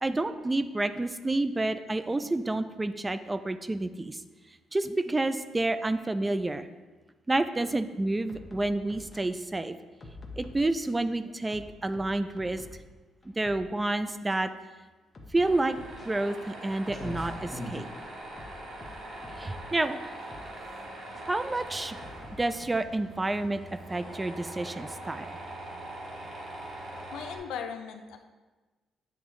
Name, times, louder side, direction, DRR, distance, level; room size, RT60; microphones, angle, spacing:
voice 1, 0.0-4.2 4.7-6.7 7.3-9.8 10.4-12.6 13.4-14.5 15.3-15.8 16.0-17.9 19.4-20.1 21.3-22.0 22.4-23.6 23.9-25.3, right 2 dB, 20° right, 11 dB, 0.3 m, -29 dB
sound 1, 8.3-9.2 10.0-11.1 11.5-12.9 13.2-13.7 14.3-14.4 15.1-16.1 16.9-18.0 18.4-19.7 20.3-20.5 21.1-21.2 22.0-22.7, left 2 dB, 35° left, 0.8 m, -47 dB
Tools, 15.4-27.4, right 1 dB, 65° right, 1.2 m, -42 dB
Clock, 16.9-24.3, left 1 dB, 15° left, 1.6 m, -46 dB
voice 2, 27.1-28.2, left 7 dB, 85° left, 6 dB, 0.5 m, -38 dB
8.9 x 3.5 x 3.1 m, 1.3 s
cardioid pair, 90°, 0 cm